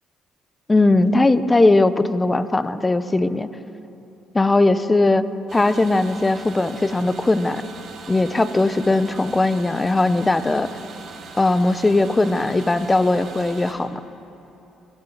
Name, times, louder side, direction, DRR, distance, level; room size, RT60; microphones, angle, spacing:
voice 1, 0.7-3.5 4.3-5.3 5.5-7.6 8.1-10.7 11.4-14.0, left 2 dB, 25° left, 14 dB, 0.5 m, -19 dB
sound 1, 5.5-13.7, right 4 dB, 60° right, 1.3 m, -40 dB
18.0 x 6.7 x 4.1 m, 2.9 s
hypercardioid pair, 55°, 0 cm